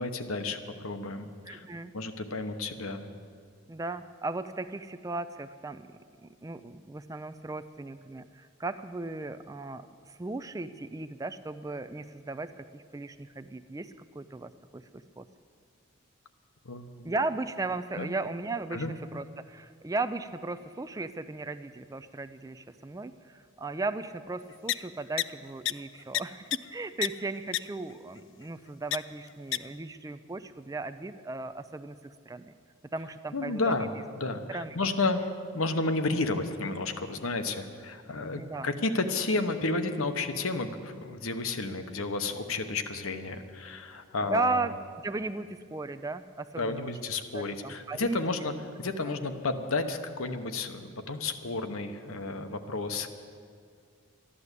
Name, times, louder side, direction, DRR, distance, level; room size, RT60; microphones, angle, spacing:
voice 1, 0.0-1.7 1.9-3.1 16.6-17.1 18.0-18.1 18.7-18.9 33.3-35.3 35.5-44.7 46.6-53.1, left 3 dB, 80° left, 7 dB, 1.0 m, -32 dB
voice 2, 1.5-1.9 3.7-5.9 6.2-15.3 17.0-18.8 19.1-32.5 32.9-33.8 34.5-34.9 38.3-38.7 44.3-44.7 45.0-46.9 47.3-48.2 49.1-49.2, right 3 dB, 15° right, 12 dB, 0.3 m, -36 dB
sound 1, 24.7-24.8 25.2-25.3 25.7-25.8 26.1-26.2 26.5-26.6 27.0-27.1 27.5-27.6 28.9-29.0 29.5-29.6, left 14 dB, 60° left, 0.4 m, -26 dB
13.0 x 11.5 x 8.2 m, 2.2 s
head